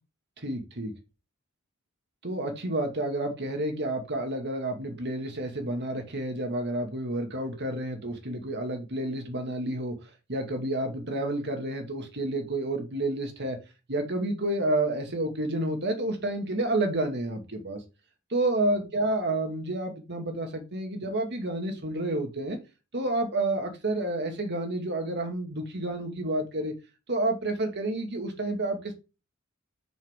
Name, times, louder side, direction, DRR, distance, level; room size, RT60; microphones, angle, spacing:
voice 1, 0.4-0.9 2.2-10.0 10.3-13.6 13.9-17.8 18.3-22.6 22.9-26.7 27.1-28.9, right 1 dB, 55° right, 2.1 m, -30 dB
6.5 x 6.5 x 3.7 m
head